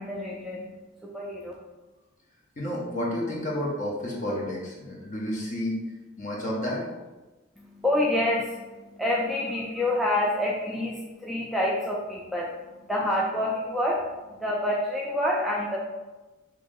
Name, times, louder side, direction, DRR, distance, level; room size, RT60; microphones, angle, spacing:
voice 1, 0.0-1.5 7.6-15.8, left 1 dB, ahead, -5 dB, 0.3 m, -28 dB
voice 2, 2.6-5.8 6.2-6.8, left 1 dB, 40° left, -4 dB, 0.9 m, -30 dB
3.0 x 2.9 x 3.6 m, 1.1 s
head